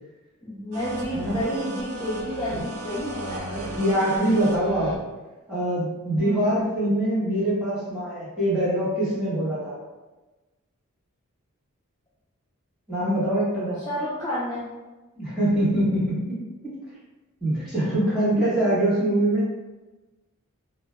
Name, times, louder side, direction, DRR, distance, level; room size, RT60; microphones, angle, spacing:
voice 1, 0.4-3.4 6.2-6.5 13.9-14.7, equal, 15° left, -10 dB, 0.4 m, -30 dB
sound 1, 0.7-5.0, right 1 dB, 80° right, 0.4 m, -36 dB
voice 2, 3.4-4.9 5.5-9.8 12.9-13.8 15.2-16.4 17.4-19.4, right 1 dB, 5° right, -11 dB, 0.9 m, -24 dB
2.1 x 2.1 x 2.9 m, 1.1 s
head